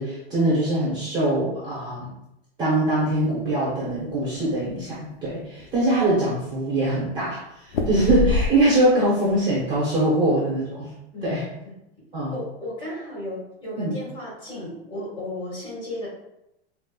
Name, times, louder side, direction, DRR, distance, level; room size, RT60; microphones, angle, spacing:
voice 1, 0.0-2.1 2.6-10.9 11.2-11.4 12.1-12.4 13.8-13.9, right 1 dB, 15° right, -8 dB, 0.8 m, -23 dB
sound 1, 3.8-4.7 5.2-5.3 5.6-6.2 7.7-8.9 9.3-9.8, left 3 dB, 65° left, 0.6 m, -26 dB
voice 2, 11.1-11.7 12.3-16.1, left 1 dB, 15° left, -8 dB, 1.5 m, -34 dB
5.2 x 2.1 x 2.2 m, 0.85 s
supercardioid pair, 155°, 31 cm